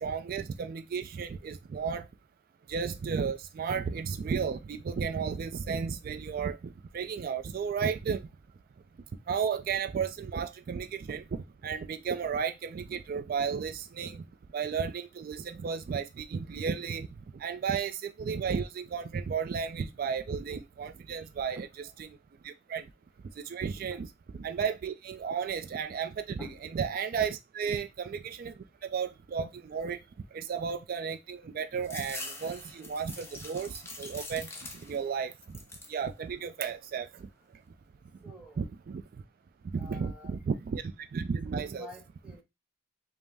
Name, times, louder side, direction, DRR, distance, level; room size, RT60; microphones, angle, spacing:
voice 1, 0.0-2.0 2.7-6.6 6.9-8.2 9.3-11.2 11.6-14.2 14.5-17.1 17.4-22.1 22.4-22.8 23.5-24.1 24.4-26.4 26.7-28.5 28.8-30.0 30.3-33.7 34.0-34.5 34.8-35.3 35.9-37.1 38.6-39.0 39.7-40.8 41.1-41.9, right 6 dB, 50° right, 0.3 m, -33 dB
voice 2, 21.6-21.9 23.9-24.0 26.4-26.6 27.7-27.8 38.2-38.7 39.8-40.3 41.5-42.4, left 2 dB, 5° right, 1.1 m, -49 dB
sound 1, 31.8-35.1 35.4-36.0 36.5-37.2, left 2 dB, 15° left, 0.7 m, -44 dB
5.2 x 2.0 x 3.3 m
head